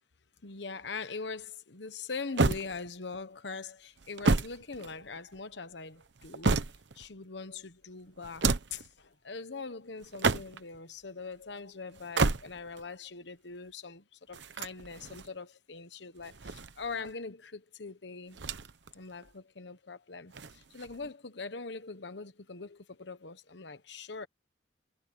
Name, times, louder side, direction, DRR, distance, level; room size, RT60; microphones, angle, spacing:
voice 1, 0.4-6.6 7.0-18.4 18.9-24.3, left 4 dB, 70° left, 1.2 m, -42 dB
sound 1, 2.4-3.2 4.0-5.4 6.0-7.1 8.2-8.9 10.0-10.8 11.9-12.8 14.3-15.3 16.2-17.1 18.3-18.9 19.2-19.3 20.3-21.1, right 3 dB, 70° right, 1.0 m, -31 dB
head